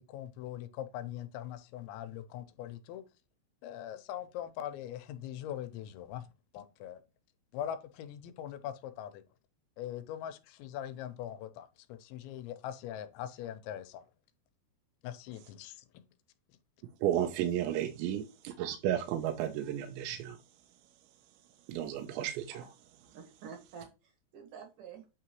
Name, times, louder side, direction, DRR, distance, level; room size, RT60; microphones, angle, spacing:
voice 1, 0.0-3.0 3.6-6.3 6.5-7.0 7.5-9.2 9.8-14.0 15.0-16.0, left 11 dB, 85° left, 3.0 m, -42 dB
voice 2, 17.0-20.4 21.7-22.6, right 11 dB, 85° right, 2.9 m, -33 dB
voice 3, 23.1-25.1, right 6 dB, 60° right, 2.4 m, -49 dB
8.8 x 3.8 x 3.0 m
omnidirectional pair, 5.2 m